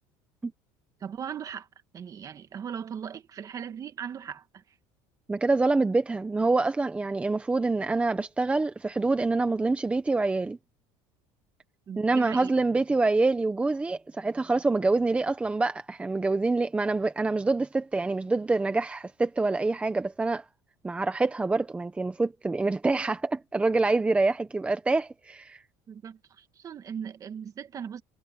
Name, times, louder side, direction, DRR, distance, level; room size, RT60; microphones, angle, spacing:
voice 1, 1.0-1.7 1.9-4.6 11.9-12.5 25.9-28.0, right 8 dB, 30° right, 1.9 m, -38 dB
voice 2, 5.3-10.6 12.0-20.4 20.8-25.6, right 3 dB, 10° right, 1.0 m, -26 dB
cardioid pair, 140°, 11 cm